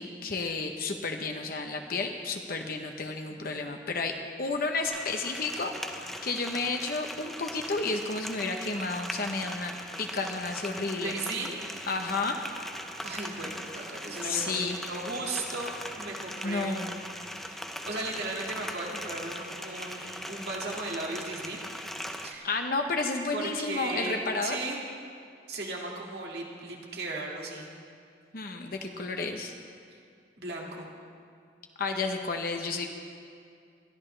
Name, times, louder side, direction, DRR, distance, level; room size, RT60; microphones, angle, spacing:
voice 1, 0.0-9.7 10.0-11.2 11.9-12.5 14.2-14.8 16.4-17.0 22.4-24.6 28.3-29.5 31.8-32.9, left 3 dB, 55° left, 4 dB, 0.9 m, -31 dB
sound 1, 4.8-22.3, equal, ahead, 0.6 m, -40 dB
voice 2, 11.0-11.6 13.0-17.0 17.4-17.6 17.8-21.6 22.2-22.5 23.3-24.8 25.5-27.7 29.9-30.0 30.4-30.9, right 2 dB, 60° right, -2 dB, 2.1 m, -36 dB
22.0 x 13.0 x 3.3 m, 2.3 s
head